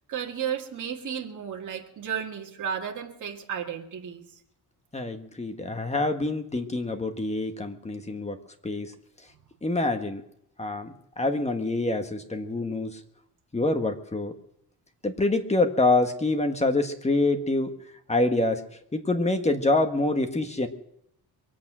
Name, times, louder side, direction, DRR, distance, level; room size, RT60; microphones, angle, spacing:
voice 1, 0.1-4.3, right 8 dB, 50° right, 0 dB, 2.0 m, -33 dB
voice 2, 4.9-8.4 8.6-8.9 9.6-10.2 10.6-13.0 13.5-14.3 15.0-17.7 18.1-18.6 18.9-20.7, left 2 dB, 15° left, 6 dB, 1.4 m, -26 dB
23.0 x 8.5 x 6.1 m, 0.76 s
cardioid pair, 125°, 38 cm